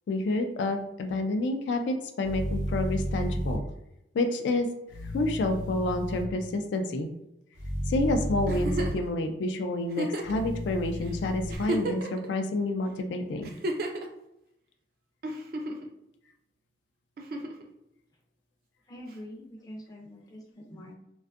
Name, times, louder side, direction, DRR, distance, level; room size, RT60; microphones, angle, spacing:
voice 1, 0.1-3.6 4.1-4.7 5.1-7.1 7.9-13.5, left 2 dB, 90° left, 6 dB, 0.3 m, -29 dB
sound 1, 2.2-3.6 4.9-6.2 7.6-8.9 10.2-11.5, equal, 80° right, 0.8 m, -32 dB
Giggle, 8.5-9.1 9.9-10.4 11.0-11.1 11.5-12.3 13.4-14.1 15.2-15.9 17.2-17.6 19.1-19.2, right 1 dB, 55° right, 0.3 m, -32 dB
voice 2, 18.9-21.0, equal, 20° left, -1 dB, 0.4 m, -44 dB
2.5 x 2.3 x 2.4 m, 0.83 s
head